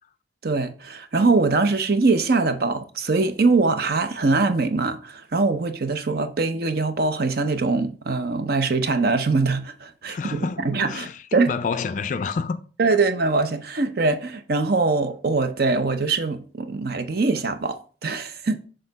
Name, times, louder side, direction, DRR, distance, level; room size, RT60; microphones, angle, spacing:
voice 1, 0.4-11.5 12.8-18.6, right 3 dB, 55° right, 0.6 m, -22 dB
voice 2, 10.1-12.6, left 5 dB, 45° left, 0.3 m, -29 dB
6.5 x 3.8 x 3.9 m
head